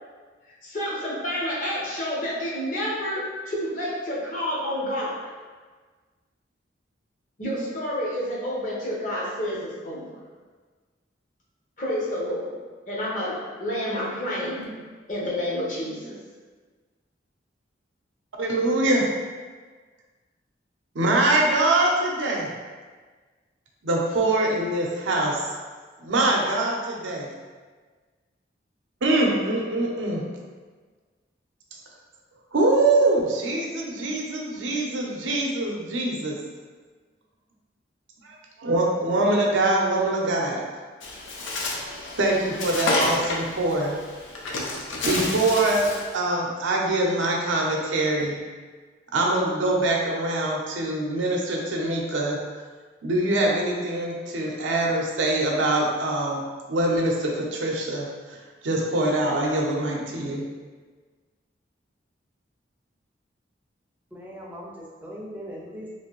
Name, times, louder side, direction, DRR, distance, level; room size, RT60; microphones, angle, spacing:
voice 1, 0.6-5.3 7.4-10.2 11.8-12.5 12.9-14.7 15.1-16.2, equal, 45° left, -5 dB, 0.7 m, -29 dB
voice 2, 18.4-19.1 20.9-22.5 23.8-25.6 26.0-27.3 29.0-30.2 32.5-36.4 38.2-40.6 42.2-44.0 45.0-48.4 49.1-52.4 53.0-56.4 56.7-58.4 58.6-60.4, right 2 dB, 85° right, -1 dB, 0.6 m, -24 dB
Bird, 41.0-46.1, left 2 dB, 90° left, 0.5 m, -30 dB
voice 3, 64.1-65.9, equal, 10° right, -4 dB, 0.4 m, -39 dB
3.0 x 2.6 x 2.9 m, 1.4 s
head